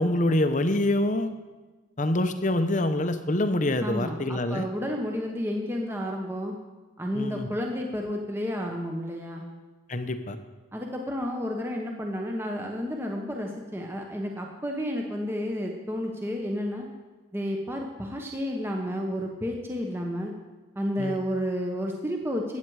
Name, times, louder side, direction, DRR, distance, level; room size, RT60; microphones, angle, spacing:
voice 1, 0.0-1.3 2.0-4.7 7.1-7.5 9.9-10.4 21.0-21.2, left 1 dB, 40° left, 9 dB, 0.8 m, -25 dB
voice 2, 3.8-6.6 7.0-9.5 10.7-16.9 17.3-20.3 20.8-22.6, equal, 10° right, 1 dB, 0.9 m, -31 dB
15.5 x 9.1 x 4.8 m, 1.3 s
head